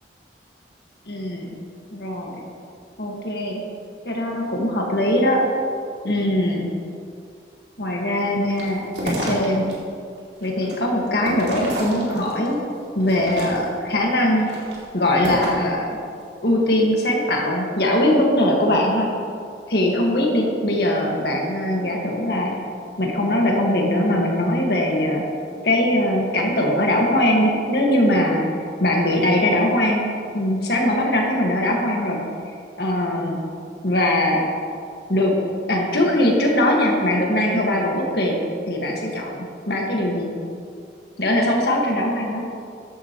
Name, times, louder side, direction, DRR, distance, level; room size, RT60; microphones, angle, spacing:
voice 1, 1.1-1.5 1.9-2.4 3.0-3.6 4.1-5.4 6.0-6.7 7.8-9.7 10.4-12.6 13.0-14.5 14.9-16.0 16.4-19.1 19.7-22.6 23.0-25.2 25.6-28.5 28.8-30.0 30.3-32.2 32.8-33.4 33.8-34.4 35.1-35.3 35.7-38.4 38.7-40.3 41.2-42.4, left 1 dB, 65° left, -1 dB, 1.8 m, -21 dB
sound 1, 8.5-9.7 10.2-12.5 13.0-13.9 14.4-15.7, right 1 dB, 80° right, 2.7 m, -30 dB
14.0 x 11.0 x 3.1 m, 2.3 s
head